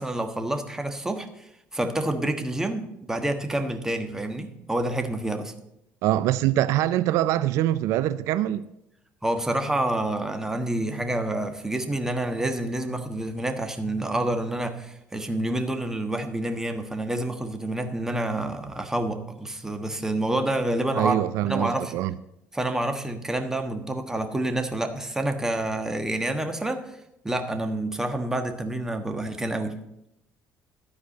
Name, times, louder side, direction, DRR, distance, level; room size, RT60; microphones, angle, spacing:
voice 1, 0.0-5.5 9.2-21.2 21.4-21.9 22.5-26.8 27.2-29.8, right 1 dB, 10° right, 1.3 m, -28 dB
voice 2, 6.0-8.7 20.9-22.1, right 13 dB, 80° right, 0.4 m, -24 dB
13.0 x 4.8 x 8.2 m
cardioid pair, 105°, 5 cm